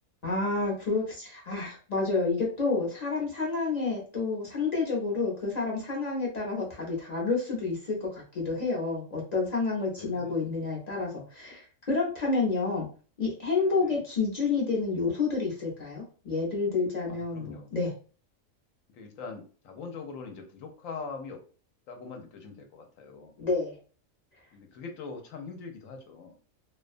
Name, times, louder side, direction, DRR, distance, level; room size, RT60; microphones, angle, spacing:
voice 1, 0.2-12.9 13.2-17.9 23.4-23.8, left 4 dB, 45° left, -3 dB, 0.6 m, -29 dB
voice 2, 9.9-10.3 13.8-14.0 17.1-17.7 18.9-21.4 21.9-23.3 24.5-26.4, left 4 dB, 75° left, 4 dB, 1.0 m, -42 dB
2.4 x 2.2 x 2.4 m, 0.39 s
omnidirectional pair, 1.4 m